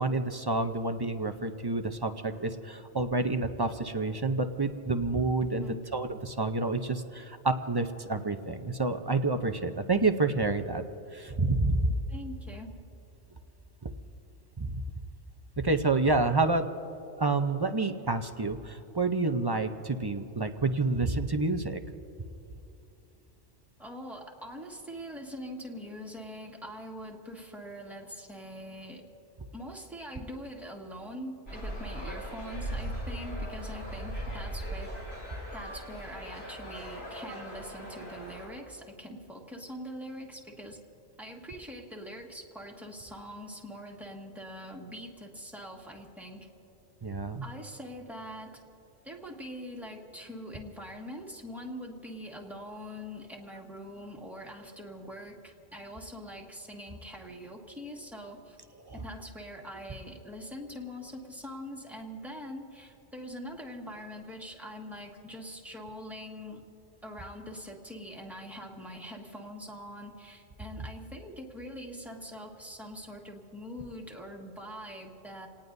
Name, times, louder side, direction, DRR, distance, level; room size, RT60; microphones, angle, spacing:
voice 1, 0.0-5.7 5.9-10.8 11.1-11.9 13.8-13.9 14.6-14.8 15.6-16.6 17.2-21.8 47.0-47.4 58.9-59.0, right 3 dB, 30° right, 7 dB, 0.5 m, -28 dB
voice 2, 12.1-12.8 23.8-29.0 29.5-35.0 35.5-40.8 41.2-46.5 47.4-48.6 49.0-58.6 58.9-66.6 67.0-75.5, equal, ahead, -2 dB, 1.7 m, -43 dB
sound 1, 31.5-38.5, equal, 75° left, 5.5 m, -39 dB
28.5 x 18.5 x 2.7 m, 3.0 s
omnidirectional pair, 1.2 m